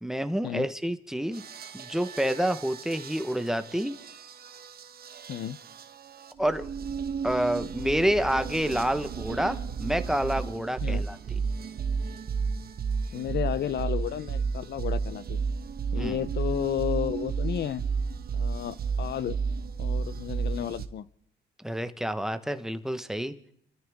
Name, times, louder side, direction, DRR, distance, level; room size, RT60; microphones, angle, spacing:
voice 1, 0.0-1.4 1.7-3.9 6.4-6.7 7.2-11.2 16.0-16.2 21.6-23.4, equal, ahead, 10 dB, 1.2 m, -28 dB
sound 1, 1.3-20.9, right 5 dB, 50° right, 1.3 m, -33 dB
voice 2, 13.1-15.4 15.9-17.8 18.3-19.4 19.8-21.1, left 10 dB, 60° left, 18 dB, 0.8 m, -32 dB
28.5 x 13.5 x 3.6 m, 0.67 s
cardioid pair, 90°, 20 cm